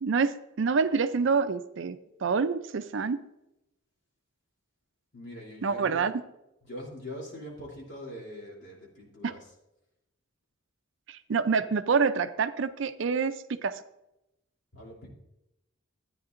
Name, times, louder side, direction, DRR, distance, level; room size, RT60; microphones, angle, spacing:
voice 1, 0.0-3.2 5.6-6.1 9.2-9.3 11.1-13.8, right 5 dB, 60° right, 12 dB, 0.4 m, -27 dB
voice 2, 5.1-6.0 6.6-9.5 14.7-15.1, left 1 dB, 55° left, -2 dB, 3.0 m, -42 dB
14.0 x 9.4 x 2.5 m, 0.90 s
head